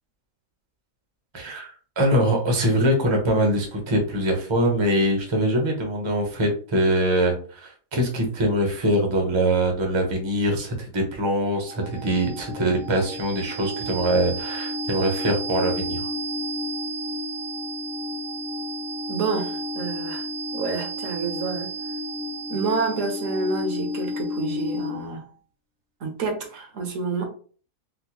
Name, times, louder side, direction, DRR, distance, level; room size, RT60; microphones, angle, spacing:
voice 1, 1.3-16.1, right 1 dB, 30° right, 0.6 m, -23 dB
sound 1, 11.3-25.2, left 1 dB, 85° right, 1.3 m, -32 dB
voice 2, 19.1-20.3 20.5-21.7 22.5-25.2 26.0-27.2, right 4 dB, 65° right, 1.1 m, -28 dB
4.2 x 2.1 x 2.8 m
omnidirectional pair, 1.5 m